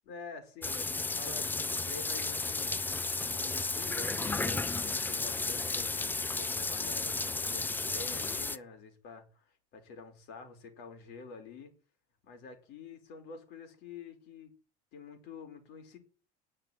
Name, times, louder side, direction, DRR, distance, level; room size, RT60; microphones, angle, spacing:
voice 1, 0.0-2.9 3.2-11.7 12.2-14.5 14.9-16.0, left 4 dB, 60° left, 5.1 m, -48 dB
sound 1, 0.6-8.6, left 3 dB, 10° left, 0.5 m, -33 dB
10.5 x 6.7 x 9.0 m
cardioid pair, 140°, 20 cm